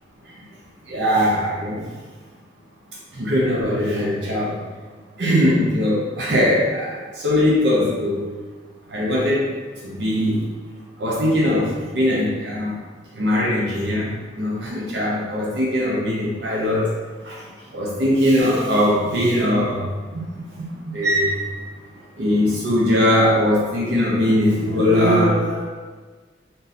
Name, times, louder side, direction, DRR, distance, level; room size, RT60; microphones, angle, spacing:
voice 1, 0.9-1.9 3.1-4.6 5.2-8.3 8.9-9.6 9.8-10.5 11.0-12.8 13.1-16.9 17.2-21.6 22.2-25.7, left 1 dB, 65° right, -4 dB, 0.7 m, -21 dB
3.8 x 2.7 x 4.0 m, 1.4 s
head